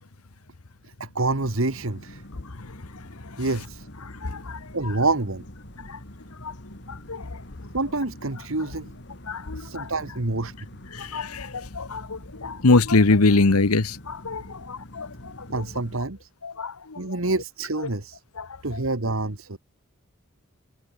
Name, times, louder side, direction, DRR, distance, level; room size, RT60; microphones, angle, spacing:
voice 1, 0.8-2.2 3.4-3.9 4.7-5.4 7.7-8.9 9.5-10.5 15.5-16.3 17.0-18.2 18.6-19.6, right 2 dB, 65° right, 1.7 m, -27 dB
sound 1, 1.2-16.0, left 1 dB, 55° left, 4.6 m, -44 dB
voice 2, 4.0-4.6 5.9-6.0 6.4-6.5 6.9-7.4 9.3-9.9 10.9-15.3 16.4-17.0 18.4-18.5, left 3 dB, 85° left, 1.1 m, -24 dB
head